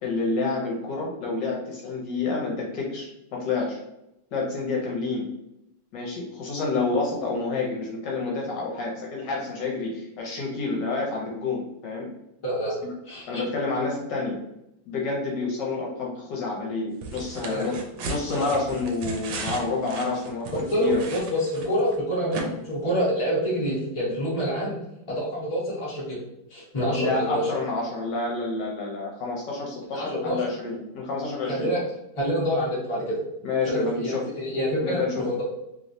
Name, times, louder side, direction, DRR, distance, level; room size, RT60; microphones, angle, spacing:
voice 1, 0.0-3.8 4.3-5.3 5.9-12.1 13.3-14.4 14.9-17.7 18.1-21.0 22.4-22.5 26.9-31.7 33.4-34.2 34.8-35.1, left 3 dB, 70° left, -2 dB, 1.3 m, -29 dB
voice 2, 12.4-12.8 13.0-13.4 17.5-17.7 20.5-24.8 25.1-26.2 26.5-27.5 29.9-30.4 31.5-31.8 32.1-33.2 33.6-35.4, equal, 20° left, -7 dB, 0.9 m, -27 dB
sound 1, 17.0-22.0 22.3-22.4, right 4 dB, 80° right, 1.3 m, -36 dB
3.3 x 3.0 x 2.6 m, 0.85 s
omnidirectional pair, 2.1 m